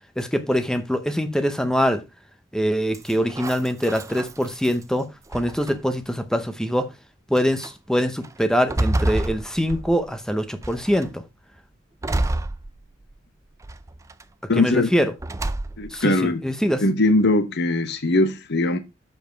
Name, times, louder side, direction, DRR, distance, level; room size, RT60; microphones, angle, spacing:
voice 1, 0.2-2.0 2.5-6.9 7.3-11.2 14.5-15.1 15.9-16.8, equal, 5° left, 0.7 m, -23 dB
sound 1, 2.9-4.8 5.3-6.0 6.8-6.9 7.4-7.7 8.2-10.2 10.6-11.1 12.0-13.2 13.6-14.2 15.2-16.0, right 1 dB, 15° right, 0.4 m, -28 dB
voice 2, 14.5-14.9 15.8-16.4 16.8-18.8, left 2 dB, 55° left, 0.9 m, -20 dB
7.2 x 5.3 x 4.5 m
head